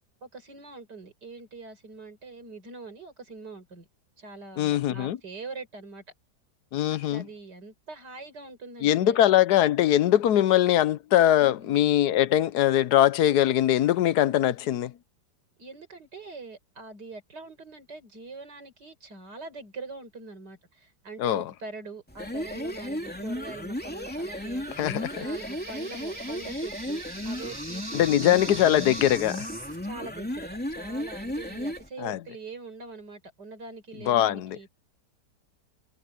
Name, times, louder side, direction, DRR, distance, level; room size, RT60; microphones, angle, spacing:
voice 1, 0.2-3.9 4.2-6.0 6.9-9.2 11.4-11.8 15.6-24.7 25.1-28.6 29.8-34.7, right 3 dB, 70° right, 5.3 m, -43 dB
voice 2, 4.6-5.2 6.7-7.2 8.8-14.9 21.2-21.5 24.8-25.2 27.9-29.5 32.0-32.2 34.1-34.6, left 12 dB, 70° left, 1.2 m, -22 dB
sound 1, 22.1-31.9, equal, 5° left, 2.6 m, -35 dB
sound 2, 23.9-29.8, right 2 dB, 15° right, 1.5 m, -42 dB
omnidirectional pair, 1.8 m